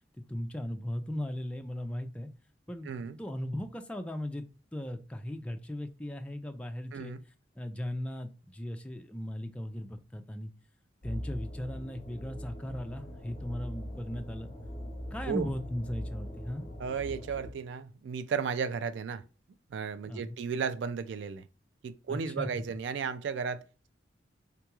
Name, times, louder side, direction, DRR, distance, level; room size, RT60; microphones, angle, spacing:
voice 1, 0.3-2.3 2.7-2.9 3.2-4.5 4.7-7.1 7.6-10.5 11.0-14.5 15.1-16.7 20.1-20.4 22.1-22.5, left 1 dB, 5° left, 0.3 m, -37 dB
voice 2, 2.8-3.2 6.9-7.2 15.3-15.5 16.8-19.2 19.7-21.4 21.8-23.9, right 6 dB, 85° right, 0.3 m, -34 dB
sound 1, 11.0-17.5, equal, 30° left, 0.7 m, -41 dB
3.8 x 2.3 x 2.9 m
head